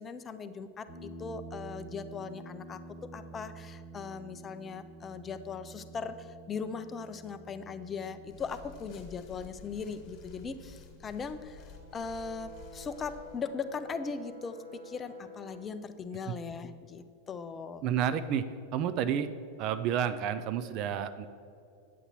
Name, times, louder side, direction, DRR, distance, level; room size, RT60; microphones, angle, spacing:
voice 1, 0.0-11.7 11.9-17.8, left 5 dB, 20° left, 11 dB, 0.5 m, -39 dB
sound 1, 0.9-14.0, right 2 dB, 15° right, 1.5 m, -50 dB
sound 2, 8.2-13.4, left 5 dB, 35° left, 1.6 m, -52 dB
Brass instrument, 11.5-15.7, left 1 dB, 75° right, 2.0 m, -50 dB
voice 2, 17.8-18.5 18.7-19.3 19.6-21.3, right 9 dB, 40° right, 11 dB, 0.4 m, -30 dB
9.3 x 8.0 x 4.2 m, 2.5 s
figure-of-eight pair, 90°, 0 cm